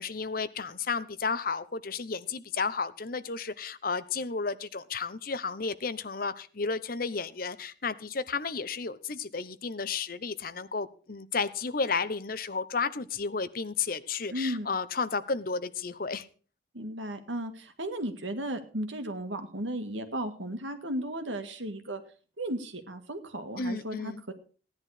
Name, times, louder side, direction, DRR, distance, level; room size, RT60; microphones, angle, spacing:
voice 1, 0.0-16.3 23.6-24.2, left 4 dB, 50° left, 14 dB, 0.8 m, -32 dB
voice 2, 14.3-14.7 16.7-22.0 22.4-24.3, right 1 dB, 80° right, 8 dB, 2.0 m, -35 dB
16.5 x 10.5 x 4.9 m, 0.39 s
head